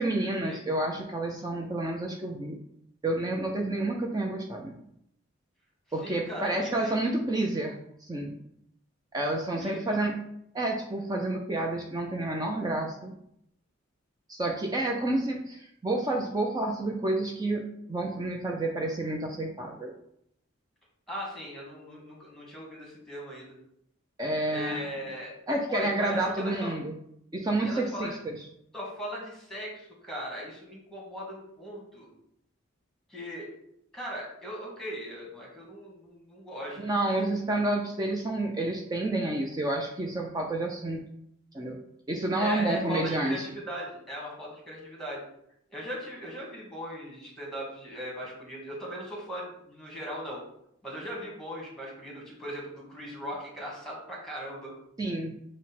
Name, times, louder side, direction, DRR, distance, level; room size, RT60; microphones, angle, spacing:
voice 1, 0.0-2.6 3.0-4.8 5.9-8.3 9.1-10.2 10.5-13.1 14.3-19.9 24.2-24.9 25.5-26.9 27.3-28.4 36.8-41.0 41.5-41.8 42.1-43.5 55.0-55.3, right 2 dB, 20° right, 1 dB, 0.4 m, -29 dB
voice 2, 6.0-6.9 9.6-10.0 21.1-23.6 24.5-25.3 25.7-26.7 27.6-28.2 28.7-32.1 33.1-33.5 33.9-37.2 42.4-45.2 45.7-50.4 50.8-54.7, equal, ahead, -3 dB, 1.4 m, -39 dB
6.0 x 2.1 x 4.1 m, 0.74 s
head